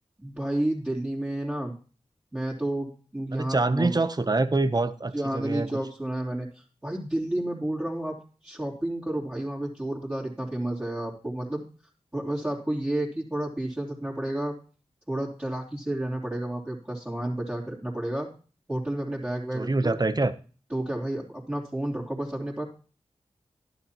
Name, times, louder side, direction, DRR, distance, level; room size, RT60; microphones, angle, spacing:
voice 1, 0.2-1.7 2.3-4.0 5.1-8.2 8.4-11.6 12.1-14.6 15.1-18.3 18.7-20.0 20.7-22.6, right 1 dB, 15° right, -7 dB, 3.3 m, -31 dB
voice 2, 3.3-5.7 19.5-20.3, right 2 dB, 35° right, 12 dB, 0.8 m, -25 dB
12.0 x 10.5 x 3.0 m, 0.38 s
cardioid pair, 45°, 12 cm